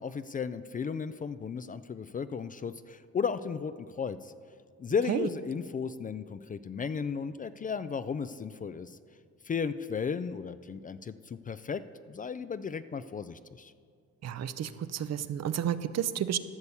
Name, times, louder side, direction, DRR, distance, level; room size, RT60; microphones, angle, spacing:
voice 1, 0.0-4.3 4.8-9.0 9.4-11.8 12.1-13.7, left 6 dB, 30° left, 13 dB, 0.4 m, -34 dB
voice 2, 14.2-16.4, right 10 dB, 60° right, 13 dB, 0.6 m, -31 dB
12.5 x 6.8 x 7.1 m, 2.2 s
cardioid pair, 90°, 30 cm